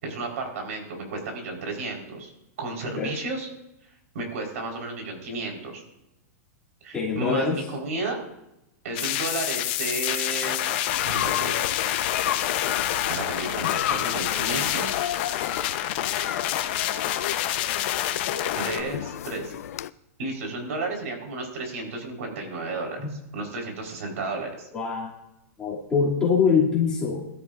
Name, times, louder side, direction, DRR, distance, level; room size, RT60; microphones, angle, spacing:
voice 1, 0.0-2.3 2.6-3.5 4.1-5.8 6.8-8.2 8.8-10.7 11.0-11.5 13.1-14.9 18.6-19.5 20.2-23.0 23.3-24.7, right 2 dB, 70° right, 2 dB, 4.7 m, -32 dB
voice 2, 6.9-7.6 23.0-23.1 24.7-25.1 25.6-27.3, left 5 dB, 10° left, -7 dB, 3.0 m, -23 dB
sound 1, 9.0-18.8, left 12 dB, 40° left, 1.0 m, -27 dB
sound 2, 10.9-19.9, left 11 dB, 80° left, 0.5 m, -33 dB
22.5 x 12.5 x 2.7 m, 0.89 s
supercardioid pair, 170°, 8 cm